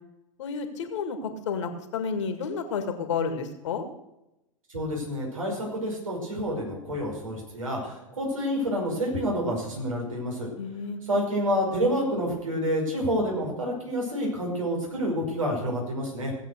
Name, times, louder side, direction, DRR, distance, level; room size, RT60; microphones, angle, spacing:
voice 1, 0.4-3.8 10.6-11.0, left 5 dB, 60° left, 7 dB, 1.9 m, -31 dB
voice 2, 4.7-10.5 11.1-16.3, equal, 75° right, -1 dB, 5.7 m, -28 dB
17.0 x 8.0 x 6.4 m, 0.90 s
figure-of-eight pair, 90°, 17 cm